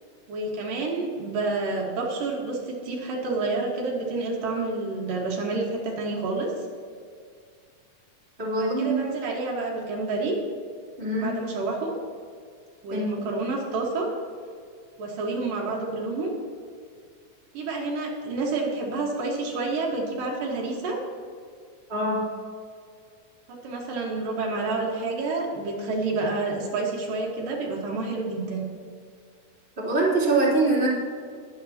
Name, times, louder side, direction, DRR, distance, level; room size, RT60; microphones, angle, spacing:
voice 1, 0.3-6.5 8.6-10.4 11.2-11.9 12.8-14.1 15.0-16.3 17.5-21.0 23.5-28.6, right 3 dB, 75° right, -2 dB, 3.3 m, -29 dB
voice 2, 8.4-9.0 11.0-11.3 12.9-13.1 21.9-22.2 29.8-30.9, right 2 dB, 20° right, -6 dB, 3.1 m, -23 dB
21.0 x 8.5 x 2.9 m, 2.1 s
omnidirectional pair, 3.9 m